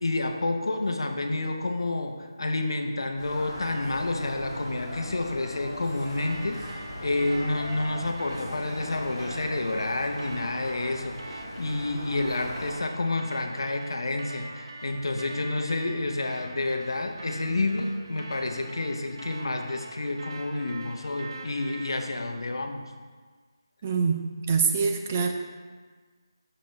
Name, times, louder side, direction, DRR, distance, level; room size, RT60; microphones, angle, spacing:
voice 1, 0.0-22.8, left 2 dB, 70° left, 5 dB, 0.8 m, -29 dB
sound 1, 3.2-12.8, left 1 dB, 30° left, 2.1 m, -39 dB
sound 2, 6.2-22.2, right 1 dB, 65° right, 0.8 m, -43 dB
voice 2, 23.8-25.3, right 5 dB, 20° right, 4 dB, 0.3 m, -25 dB
6.7 x 6.5 x 3.2 m, 1.5 s
figure-of-eight pair, 170°, 2 cm